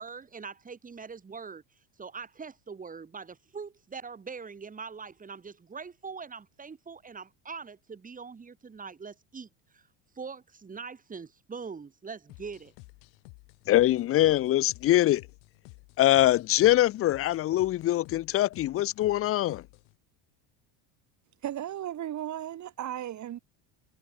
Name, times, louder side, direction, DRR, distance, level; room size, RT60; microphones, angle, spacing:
voice 1, 0.0-1.6 2.0-9.9 10.1-12.7, right 5 dB, 15° right, 4.9 m, -42 dB
sound 1, 12.3-20.0, left 31 dB, 65° left, 5.5 m, -52 dB
voice 2, 13.7-15.3 16.0-19.7, left 14 dB, 30° left, 0.6 m, -23 dB
voice 3, 21.4-23.4, right 11 dB, 35° right, 5.6 m, -35 dB
cardioid pair, 150°, 50 cm